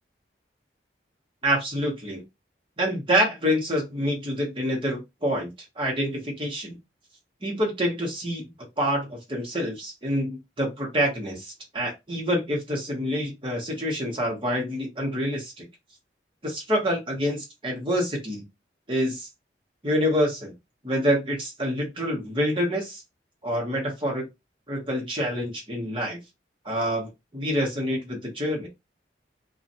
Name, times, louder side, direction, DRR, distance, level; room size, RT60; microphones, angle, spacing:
voice 1, 1.4-2.2 2.8-5.5 5.8-6.8 7.4-8.4 8.8-15.6 16.4-18.5 18.9-19.3 19.8-20.5 20.8-23.0 23.4-24.3 24.7-26.2 26.6-28.7, equal, 30° right, 1.2 m, -27 dB
2.8 x 2.4 x 2.7 m
head